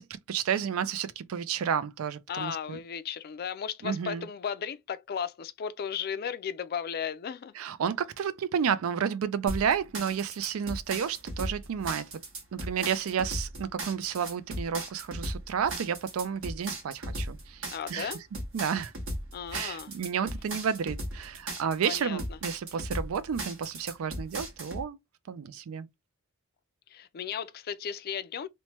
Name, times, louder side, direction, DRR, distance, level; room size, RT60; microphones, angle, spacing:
voice 1, 0.0-2.8 3.8-4.3 7.6-12.1 12.5-18.1 18.5-18.9 19.5-25.0 25.3-25.9, right 7 dB, 85° right, 0.4 m, -31 dB
voice 2, 2.3-7.5 17.7-18.2 19.3-19.9 21.8-22.4 26.9-28.5, left 7 dB, 45° left, 0.3 m, -35 dB
sound 1, 9.5-24.8, right 1 dB, 65° right, 1.2 m, -37 dB
3.0 x 2.1 x 2.8 m
head